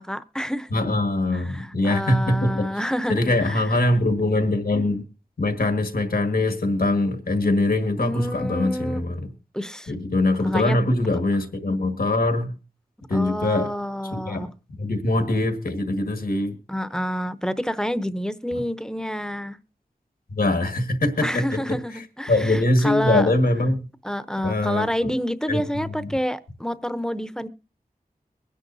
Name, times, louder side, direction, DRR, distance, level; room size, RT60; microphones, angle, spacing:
voice 1, 0.0-0.7 1.3-3.7 8.0-9.0 9.5-10.0 10.4-10.9 13.1-14.5 16.7-19.6 21.2-23.3 24.0-27.5, equal, 5° left, 0.7 m, -28 dB
voice 2, 0.7-2.7 3.1-5.0 5.4-9.3 9.9-12.6 13.1-13.7 14.1-14.5 14.8-16.6 20.3-23.8 24.4-25.1 25.5-25.6 26.0-26.1, left 2 dB, 80° left, 1.7 m, -23 dB
23.0 x 10.0 x 2.7 m
wide cardioid pair, 70°, 15 cm